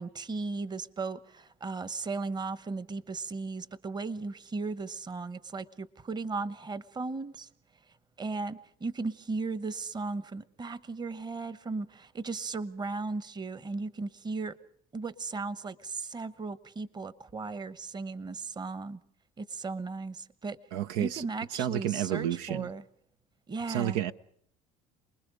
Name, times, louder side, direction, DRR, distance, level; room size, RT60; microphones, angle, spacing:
voice 1, 0.0-7.5 8.2-14.6 14.9-19.0 19.4-20.6 21.0-22.8 23.5-24.0, right 3 dB, 25° right, 17 dB, 1.1 m, -36 dB
voice 2, 20.7-21.3 21.5-22.7 23.7-24.1, right 11 dB, 80° right, 12 dB, 0.8 m, -30 dB
28.5 x 20.5 x 5.0 m, 0.66 s
supercardioid pair, 100°, 18 cm